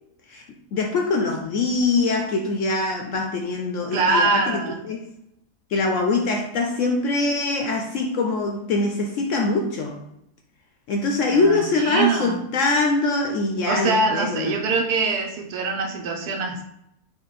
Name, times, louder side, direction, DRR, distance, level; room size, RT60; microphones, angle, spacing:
voice 1, 0.7-5.1 5.7-10.0 10.9-14.6, left 3 dB, 65° left, 2 dB, 0.8 m, -23 dB
voice 2, 3.9-4.8 11.3-12.4 13.7-16.6, right 3 dB, 75° right, 1 dB, 1.3 m, -23 dB
4.0 x 3.1 x 4.0 m, 0.78 s
omnidirectional pair, 1.7 m